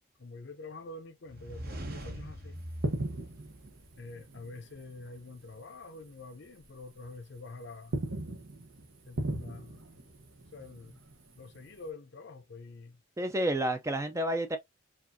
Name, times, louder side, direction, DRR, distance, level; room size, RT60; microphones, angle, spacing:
voice 1, 0.2-2.6 4.0-8.0 9.1-9.9 10.5-11.0 11.4-13.0, left 3 dB, 55° left, 0.6 m, -46 dB
sound 1, 1.3-4.2, right 1 dB, 45° right, 0.9 m, -42 dB
sound 2, 2.6-5.6 5.8-6.1 6.6-7.4 7.7-11.9, right 1 dB, 75° right, 1.0 m, -39 dB
voice 2, 13.2-14.6, right 1 dB, 15° right, 0.4 m, -30 dB
4.7 x 2.5 x 2.6 m
head